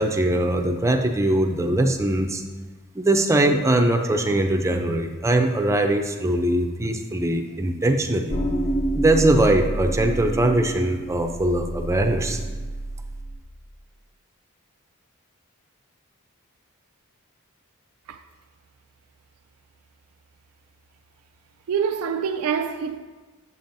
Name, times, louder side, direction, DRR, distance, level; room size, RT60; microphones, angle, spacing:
voice 1, 0.0-2.4 3.0-8.4 8.9-12.4, right 1 dB, 15° right, 0.4 m, -21 dB
sound 1, 8.3-13.4, right 1 dB, 50° left, 0.8 m, -28 dB
voice 2, 21.7-23.0, right 7 dB, 80° right, 0.4 m, -25 dB
8.1 x 7.0 x 2.6 m
head